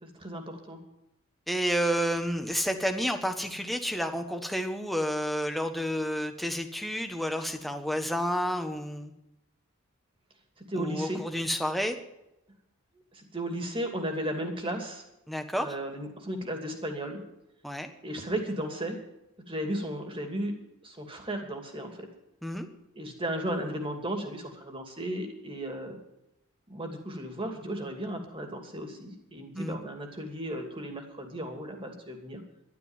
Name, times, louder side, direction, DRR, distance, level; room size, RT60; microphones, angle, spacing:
voice 1, 0.0-0.8 10.7-11.2 13.1-15.0 15.6-17.2 18.0-19.0 19.5-20.6 20.8-22.1 22.9-26.0 26.7-32.4, right 1 dB, 25° right, 3 dB, 2.6 m, -35 dB
voice 2, 1.5-9.1 10.8-12.0 15.3-15.8 17.6-17.9 22.4-22.7 29.6-29.8, equal, ahead, 5 dB, 1.3 m, -30 dB
12.5 x 12.0 x 7.3 m, 0.89 s
head